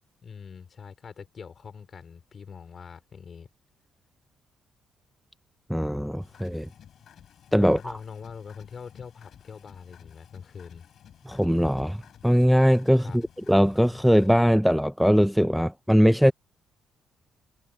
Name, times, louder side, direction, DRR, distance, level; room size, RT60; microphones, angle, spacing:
voice 1, 0.2-3.5 7.6-10.9 12.9-13.2, left 6 dB, 45° left, 3.8 m, -43 dB
voice 2, 5.7-6.7 7.5-7.9 11.3-16.3, equal, ahead, 0.5 m, -21 dB
sound 1, 6.2-14.4, left 9 dB, 65° left, 6.4 m, -53 dB
cardioid pair, 90°, 0 cm